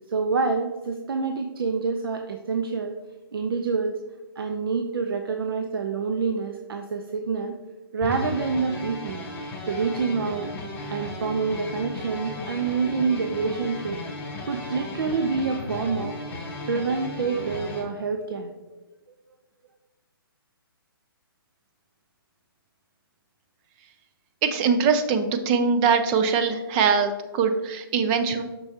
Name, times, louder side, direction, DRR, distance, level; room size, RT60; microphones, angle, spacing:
voice 1, 0.1-3.0 3.3-4.0 4.4-7.6 7.9-9.2 9.7-10.5 10.9-14.0 14.4-16.2 16.7-18.5, right 4 dB, 70° right, 5 dB, 0.6 m, -27 dB
sound 1, 8.0-17.8, left 1 dB, 15° left, 1.2 m, -35 dB
voice 2, 24.4-28.4, right 5 dB, 20° right, 8 dB, 0.5 m, -22 dB
6.4 x 6.1 x 2.8 m, 1.1 s
hypercardioid pair, 150°, 12 cm